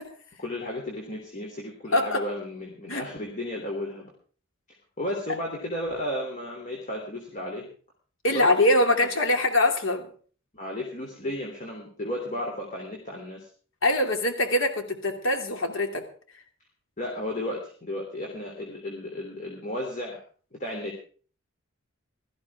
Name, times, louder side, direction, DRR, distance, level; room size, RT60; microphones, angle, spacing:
voice 1, 0.4-4.1 5.0-7.7 8.3-8.5 10.5-13.5 17.0-20.2 20.5-20.9, left 1 dB, 35° left, 0 dB, 3.2 m, -33 dB
voice 2, 1.9-2.2 2.9-3.0 8.2-10.1 13.8-16.0, left 1 dB, 75° left, 5 dB, 2.8 m, -23 dB
18.0 x 14.0 x 3.6 m, 0.42 s
head